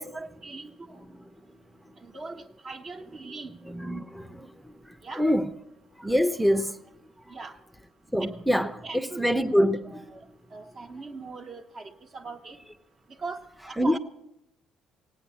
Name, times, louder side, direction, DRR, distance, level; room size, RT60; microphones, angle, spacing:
voice 1, 0.0-1.0 2.0-3.5 5.0-5.2 7.3-7.6 8.2-8.3 8.8-9.3 9.6-10.2 10.5-12.6 13.1-14.0, right 3 dB, 40° right, 1.5 m, -40 dB
voice 2, 1.1-1.6 1.9-2.0 3.2-3.3 3.6-5.5 6.0-6.8 7.3-7.4 8.1-10.1 13.8-14.0, equal, ahead, 0.7 m, -26 dB
17.5 x 8.8 x 8.3 m
cardioid pair, 95°, 0 cm